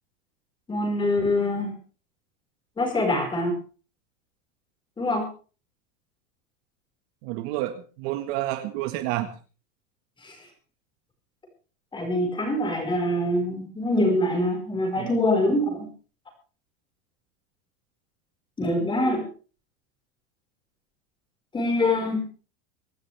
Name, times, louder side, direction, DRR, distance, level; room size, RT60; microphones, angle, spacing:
voice 1, 0.7-1.7 2.8-3.6 5.0-5.2 10.2-10.3 11.9-15.9 18.6-19.2 21.5-22.2, left 1 dB, 10° left, 3 dB, 5.2 m, -24 dB
voice 2, 7.2-9.3 15.0-15.1, right 15 dB, 50° right, 8 dB, 1.7 m, -29 dB
24.5 x 12.0 x 3.4 m, 0.36 s
supercardioid pair, 165°, 39 cm